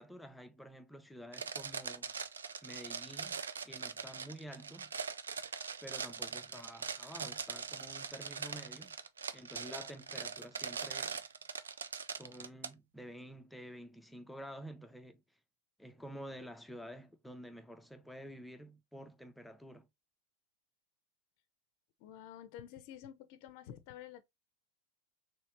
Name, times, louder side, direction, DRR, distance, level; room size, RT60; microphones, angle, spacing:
voice 1, 0.0-2.1 2.6-4.9 5.8-9.0 9.3-11.2 12.2-15.2 15.8-19.9, equal, 5° left, 0.5 m, -50 dB
sound 1, 1.3-12.7, right 6 dB, 80° right, 0.3 m, -42 dB
voice 2, 22.0-24.2, left 10 dB, 55° left, 0.5 m, -50 dB
3.1 x 3.1 x 2.9 m
hypercardioid pair, 90°, 0 cm